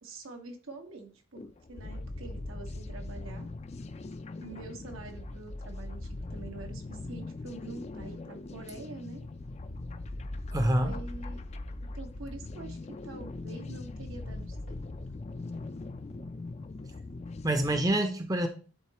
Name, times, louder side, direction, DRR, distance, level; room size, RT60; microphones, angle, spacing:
voice 1, 0.0-3.5 4.4-9.2 10.8-11.4 11.9-14.8, right 3 dB, 85° right, 1.4 m, -46 dB
sound 1, 1.3-17.8, left 2 dB, 30° left, 0.4 m, -40 dB
voice 2, 10.5-10.9 17.4-18.5, right 1 dB, 15° right, 0.6 m, -26 dB
11.5 x 4.0 x 2.9 m
head